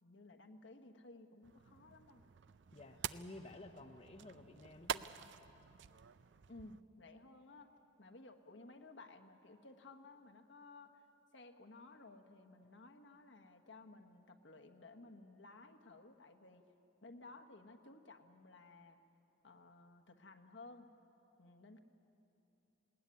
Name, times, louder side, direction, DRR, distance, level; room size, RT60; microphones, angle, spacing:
voice 1, 0.0-2.2 6.5-7.7 8.0-11.1 11.3-16.7 17.0-19.0 19.4-20.9 21.4-21.8, left 2 dB, 70° left, 5 dB, 1.3 m, -57 dB
sound 1, 1.4-6.8, right 8 dB, 70° right, 0.5 m, -47 dB
voice 2, 2.7-5.1, left 2 dB, 35° left, 5 dB, 0.8 m, -53 dB
20.0 x 18.5 x 9.6 m, 2.9 s
head